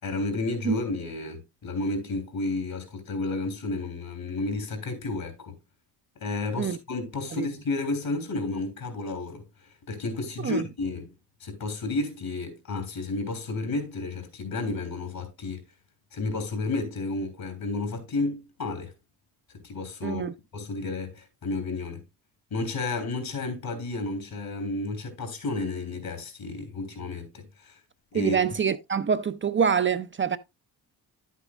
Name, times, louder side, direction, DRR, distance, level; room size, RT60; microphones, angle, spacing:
voice 1, 0.0-5.6 6.2-9.5 9.9-11.1 11.4-15.6 16.1-18.9 19.5-20.2 20.5-22.0 22.5-27.8 28.1-28.4, left 3 dB, 70° left, 3.5 m, -31 dB
voice 2, 20.0-20.3 28.1-30.4, right 7 dB, 30° right, 0.5 m, -25 dB
10.5 x 8.2 x 2.4 m
cardioid pair, 75°, 37 cm